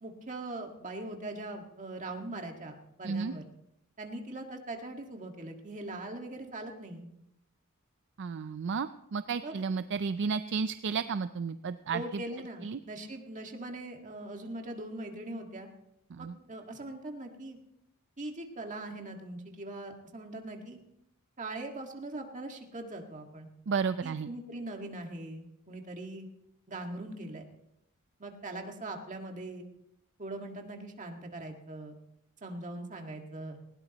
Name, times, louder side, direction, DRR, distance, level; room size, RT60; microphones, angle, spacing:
voice 1, 0.0-3.4 4.0-7.1 9.4-9.6 11.9-15.7 16.2-17.6 18.2-20.8 21.4-23.5 24.0-26.3 26.7-27.4 28.2-29.7 30.2-32.0 32.4-33.6, right 2 dB, 35° right, 3 dB, 1.8 m, -41 dB
voice 2, 8.2-12.2 12.6-12.8 16.1-16.3 23.7-24.3, right 5 dB, 55° right, 11 dB, 0.4 m, -32 dB
19.5 x 17.0 x 3.0 m, 0.81 s
head